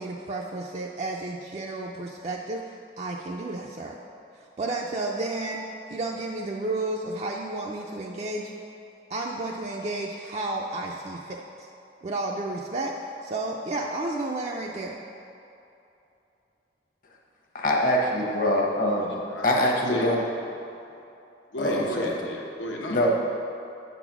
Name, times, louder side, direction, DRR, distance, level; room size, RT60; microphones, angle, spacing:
voice 1, 0.0-4.0 4.4-8.5 9.1-11.7 12.0-15.0, right 2 dB, 35° right, -1 dB, 0.4 m, -32 dB
voice 2, 17.5-19.2 19.4-20.2 21.6-22.1 22.9-23.1, left 1 dB, 45° left, -1 dB, 0.9 m, -24 dB
voice 3, 19.0-20.1 21.5-23.1, equal, 85° left, -1 dB, 0.9 m, -34 dB
8.5 x 4.0 x 5.9 m, 2.8 s
head